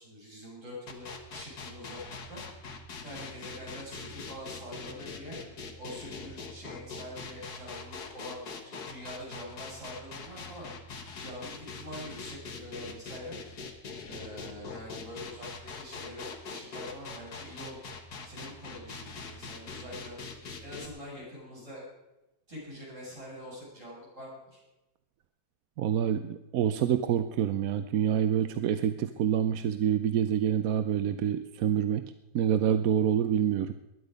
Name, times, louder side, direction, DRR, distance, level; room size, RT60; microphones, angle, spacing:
voice 1, 0.0-2.0 2.3-2.4 3.0-5.4 5.8-10.7 11.2-13.4 14.1-17.9 18.2-20.2 20.6-21.8 22.5-24.6, equal, 45° right, -5 dB, 8.2 m, -44 dB
sound 1, 0.9-20.9, left 4 dB, 70° left, 2.1 m, -42 dB
voice 2, 25.8-33.7, right 9 dB, 65° right, 10 dB, 1.0 m, -27 dB
21.0 x 10.5 x 5.2 m, 0.99 s
omnidirectional pair, 1.8 m